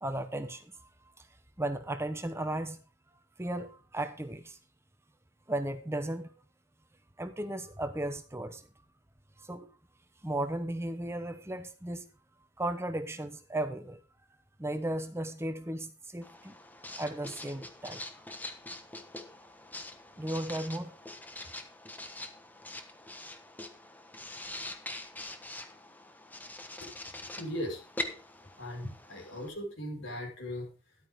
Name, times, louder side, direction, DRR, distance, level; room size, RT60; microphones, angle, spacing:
voice 1, 0.0-0.9 1.2-1.3 1.6-2.8 3.4-4.6 5.5-6.3 7.2-8.6 9.4-9.7 10.2-12.1 12.6-14.0 14.6-16.5 17.0-18.0 20.2-20.9, right 1 dB, 15° right, 0.8 m, -35 dB
Writing, 16.2-29.5, left 1 dB, 10° left, 1.2 m, -44 dB
voice 2, 26.8-27.8 28.6-31.0, equal, 70° left, 5.4 m, -39 dB
13.0 x 11.0 x 3.7 m
head